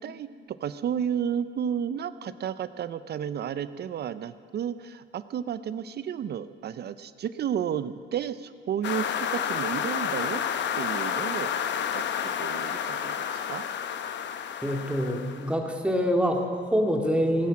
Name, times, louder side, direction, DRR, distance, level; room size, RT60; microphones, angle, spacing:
voice 1, 0.0-10.4 10.8-11.5 11.9-13.7, right 8 dB, 55° right, 14 dB, 0.5 m, -32 dB
sound 1, 8.8-15.5, left 8 dB, 65° left, 0.8 m, -30 dB
voice 2, 14.6-17.5, equal, 5° right, 2 dB, 2.0 m, -25 dB
16.5 x 9.6 x 7.3 m, 2.2 s
cardioid pair, 90°, 20 cm